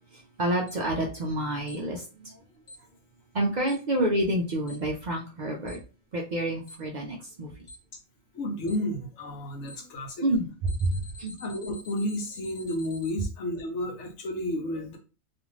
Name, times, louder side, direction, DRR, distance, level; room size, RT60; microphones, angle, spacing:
voice 1, 0.1-2.4 3.3-5.8 6.1-7.5 10.2-11.4, right 1 dB, 75° right, -1 dB, 0.4 m, -28 dB
Alarm, 0.7-0.8 1.7-1.8 2.7-2.8 3.7-3.8 4.7-4.8 5.7-5.8 6.7-6.8 7.7-7.8 8.7-8.8 9.7-9.8 10.7-13.1, left 2 dB, 15° left, 1.1 m, -46 dB
voice 2, 8.3-10.3 11.4-15.0, left 1 dB, 70° left, 2 dB, 0.9 m, -32 dB
2.5 x 2.4 x 3.0 m, 0.34 s
omnidirectional pair, 1.4 m